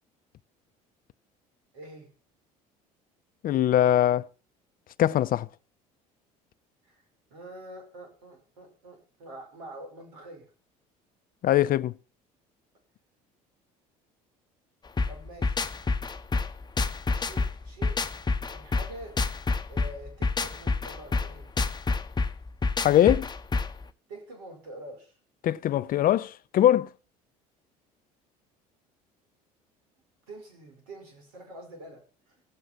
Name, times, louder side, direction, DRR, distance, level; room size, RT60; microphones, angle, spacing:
voice 1, 1.7-2.1 6.8-7.0 7.3-10.5 15.0-15.6 17.1-18.0 18.4-19.2 19.7-21.5 24.1-25.2 30.3-32.0 32.3-32.4, right 1 dB, 85° right, 5.5 m, -45 dB
voice 2, 3.4-4.3 5.0-5.5 11.4-11.9 22.8-23.3 25.4-26.9, left 12 dB, 50° left, 0.7 m, -22 dB
sound 1, 15.0-23.8, left 3 dB, 20° left, 1.0 m, -28 dB
16.0 x 8.2 x 6.0 m
hypercardioid pair, 70°, 19 cm